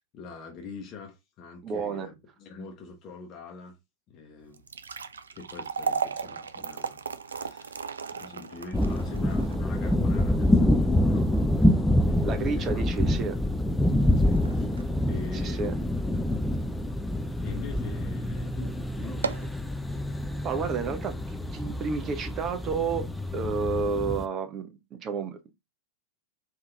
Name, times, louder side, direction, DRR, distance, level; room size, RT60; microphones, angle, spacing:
voice 1, 0.0-3.8 4.1-4.6 5.3-7.9 8.1-11.3 11.6-13.0 14.1-16.1 17.4-19.4, left 4 dB, 35° left, 0.9 m, -44 dB
voice 2, 1.6-2.1 12.2-13.4 15.4-15.7 20.4-23.1 23.3-25.5, right 5 dB, 30° right, 0.7 m, -31 dB
sound 1, 4.5-16.8 17.2-17.3 18.0-18.2 18.5-18.6 19.0-19.6, right 5 dB, 70° right, 0.3 m, -36 dB
sound 2, 8.7-24.3, left 1 dB, 5° left, 0.4 m, -26 dB
3.6 x 2.8 x 3.3 m
figure-of-eight pair, 90°, 0 cm